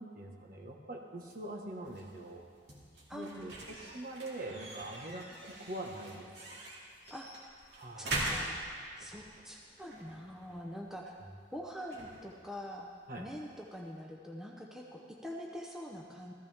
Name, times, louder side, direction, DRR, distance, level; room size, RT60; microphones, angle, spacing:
voice 1, 0.0-2.4 3.1-6.6 7.7-8.2 13.1-13.3, right 1 dB, 50° right, 0 dB, 1.5 m, -44 dB
sound 1, 1.2-14.0, right 1 dB, 65° right, 2.6 m, -44 dB
voice 2, 3.1-3.5 7.1-7.4 8.0-8.6 9.0-11.2 11.5-12.9 13.2-16.3, equal, 5° right, -2 dB, 0.8 m, -44 dB
16.0 x 14.5 x 3.6 m, 2.1 s
head